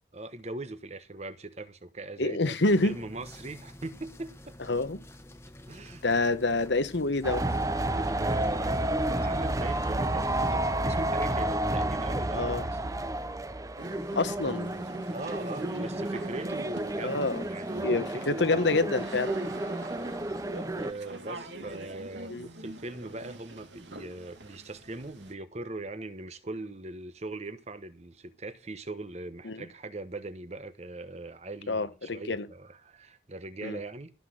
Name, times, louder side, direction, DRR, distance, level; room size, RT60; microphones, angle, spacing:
voice 1, 0.1-2.5 2.8-4.6 5.7-6.0 7.7-12.9 15.0-18.5 19.8-19.9 20.7-34.1, right 2 dB, 35° right, 1.0 m, -40 dB
voice 2, 2.2-2.9 4.7-5.0 6.0-7.4 12.3-12.6 14.1-14.7 17.0-17.4 17.8-19.3 22.3-22.5 29.4-29.6 31.7-32.5 33.6-33.8, left 2 dB, 75° left, 1.2 m, -27 dB
sound 1, 2.7-11.3, left 1 dB, 15° left, 1.2 m, -49 dB
sound 2, 7.2-20.9, right 1 dB, 20° right, 0.7 m, -31 dB
sound 3, 13.8-25.3, right 2 dB, 80° right, 2.4 m, -45 dB
14.0 x 6.1 x 7.6 m
head